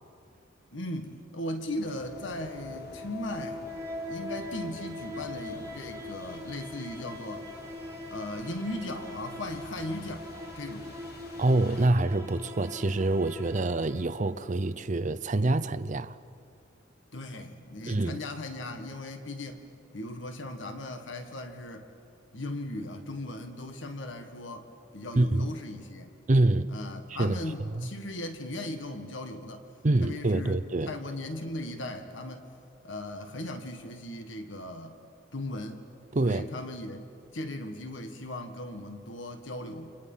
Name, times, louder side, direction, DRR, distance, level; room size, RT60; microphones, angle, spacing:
voice 1, 0.7-3.6 4.1-7.5 8.1-11.0 17.1-19.6 19.9-21.9 22.3-24.7 24.9-26.1 26.7-29.7 30.0-30.6 30.8-32.5 32.8-35.0 35.3-35.9 36.2-37.0 37.3-40.0, left 1 dB, 75° left, 1.7 m, -38 dB
sound 1, 1.7-14.7, left 1 dB, 15° right, 1.8 m, -42 dB
sound 2, 1.8-11.9, left 2 dB, 55° left, 1.6 m, -49 dB
voice 2, 11.4-16.2 17.9-18.2 25.2-25.5 26.3-26.7 27.1-27.4 27.8-27.9 29.8-30.9 36.1-36.5, right 2 dB, 40° right, 0.7 m, -26 dB
29.5 x 27.0 x 5.7 m
head